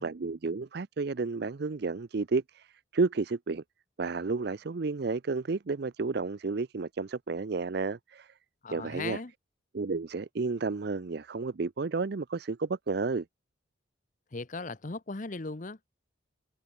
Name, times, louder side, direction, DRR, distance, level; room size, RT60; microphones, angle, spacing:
voice 1, 0.0-3.6 4.0-8.3 8.7-9.2 9.7-13.2, right 4 dB, 55° right, 0.5 m, -31 dB
voice 2, 8.6-9.3 14.3-16.0, left 3 dB, 40° left, 0.9 m, -38 dB
open air
head